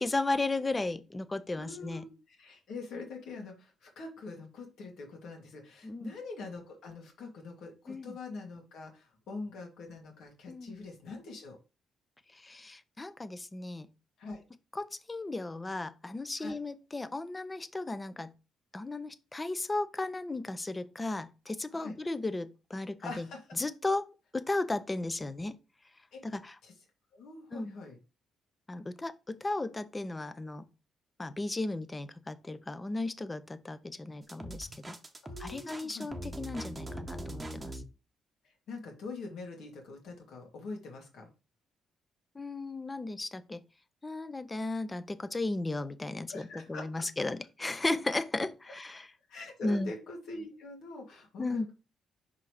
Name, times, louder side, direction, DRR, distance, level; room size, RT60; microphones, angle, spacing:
voice 1, 0.0-2.1 5.8-6.1 7.9-8.2 10.5-10.8 12.4-13.9 14.7-18.3 18.7-23.3 23.6-24.1 24.3-25.5 26.2-26.5 27.5-27.7 28.7-30.7 31.2-35.0 35.4-37.7 42.4-43.6 44.0-49.1 49.6-49.9 51.4-51.7, left 2 dB, 20° left, 0.6 m, -35 dB
voice 2, 1.6-11.6 14.2-14.4 16.4-16.6 21.7-21.9 23.0-23.5 26.1-26.2 26.6-26.7 27.1-28.0 35.2-36.1 38.7-41.3 46.3-46.8 49.3-51.7, left 3 dB, 75° left, 2.3 m, -44 dB
sound 1, 34.3-37.8, right 1 dB, 20° right, 1.0 m, -41 dB
5.6 x 3.7 x 4.8 m
cardioid pair, 90°, 0 cm